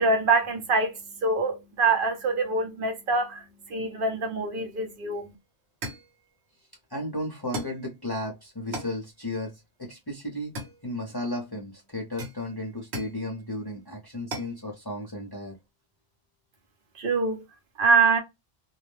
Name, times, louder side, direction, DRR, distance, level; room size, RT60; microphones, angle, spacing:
voice 1, 0.0-5.3 17.0-17.4 17.8-18.2, right 3 dB, 60° right, 0.7 m, -25 dB
sound 1, 5.1-5.3 5.8-6.2 7.5-7.9 8.7-9.0 10.5-11.2 12.2-13.2 14.3-14.6, right 1 dB, 80° right, 1.1 m, -37 dB
voice 2, 6.9-10.5 10.8-15.6, left 1 dB, 30° left, 0.5 m, -34 dB
2.3 x 2.1 x 3.0 m
omnidirectional pair, 1.1 m